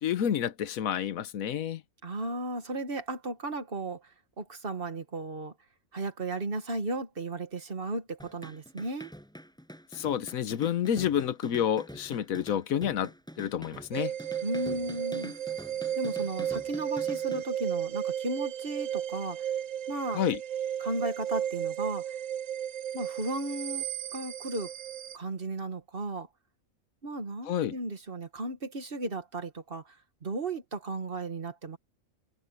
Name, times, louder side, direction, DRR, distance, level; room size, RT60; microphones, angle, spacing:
voice 1, 0.0-1.8 9.9-13.1 13.4-14.1 20.1-20.4 27.4-27.7, left 9 dB, 85° left, 1.3 m, -29 dB
voice 2, 2.0-4.0 4.4-5.5 5.9-9.1 14.4-15.3 16.0-19.5 19.9-20.2 20.8-22.1 22.9-23.9 24.1-24.7 25.1-26.3 27.0-31.8, right 2 dB, 45° right, 1.8 m, -35 dB
sound 1, 8.2-17.4, equal, 5° left, 6.3 m, -46 dB
sound 2, 13.9-25.2, right 10 dB, 70° right, 1.0 m, -34 dB
omnidirectional pair, 1.4 m